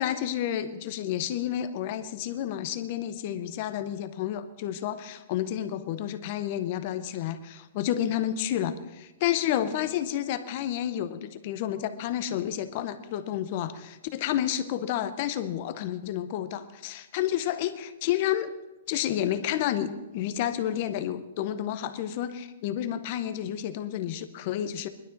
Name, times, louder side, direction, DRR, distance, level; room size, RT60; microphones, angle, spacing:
voice 1, 0.0-18.5 18.9-24.9, left 11 dB, 30° left, 11 dB, 0.7 m, -30 dB
19.0 x 12.0 x 3.9 m, 1.1 s
hypercardioid pair, 175°, 0 cm